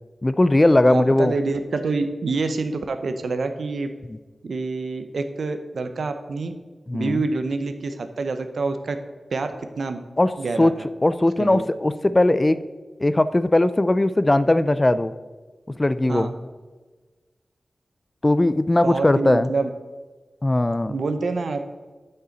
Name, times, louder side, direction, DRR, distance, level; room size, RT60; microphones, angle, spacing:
voice 1, 0.2-1.3 4.1-4.2 6.9-7.2 10.2-10.7 11.0-12.6 13.0-15.1 15.7-16.3 18.2-19.5 20.4-20.9, left 1 dB, 25° left, 13 dB, 0.3 m, -19 dB
voice 2, 0.9-3.9 4.4-6.5 6.9-9.0 9.3-10.0 10.4-10.9 11.4-11.6 16.1-16.3 18.8-19.7 20.9-21.6, right 3 dB, 80° right, 8 dB, 0.7 m, -27 dB
12.5 x 5.5 x 3.9 m, 1.3 s
wide cardioid pair, 110°, 0 cm